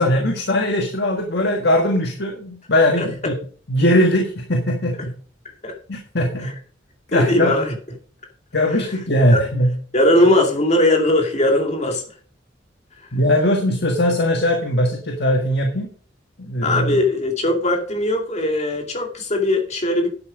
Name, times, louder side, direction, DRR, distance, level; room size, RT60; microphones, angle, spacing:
voice 1, 0.0-3.3 3.7-5.1 5.9-6.5 7.1-7.6 8.5-9.7 13.1-15.9 16.4-17.0, left 1 dB, 60° left, 3 dB, 1.7 m, -20 dB
voice 2, 7.1-7.7 9.3-9.4 9.9-12.0 16.6-20.1, left 1 dB, 35° left, 2 dB, 2.4 m, -19 dB
10.5 x 8.0 x 5.0 m, 0.43 s
head